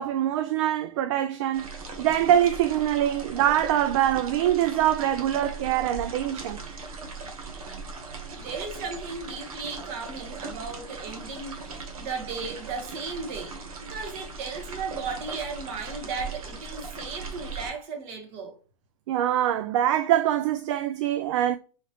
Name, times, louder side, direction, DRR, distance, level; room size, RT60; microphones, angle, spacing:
voice 1, 0.0-6.6 19.1-21.6, right 11 dB, 55° right, 0.4 m, -24 dB
sound 1, 1.5-17.7, right 4 dB, 85° right, 1.2 m, -39 dB
voice 2, 8.3-18.6, right 4 dB, 40° right, 1.3 m, -36 dB
4.2 x 2.9 x 2.9 m
hypercardioid pair, 145°, 18 cm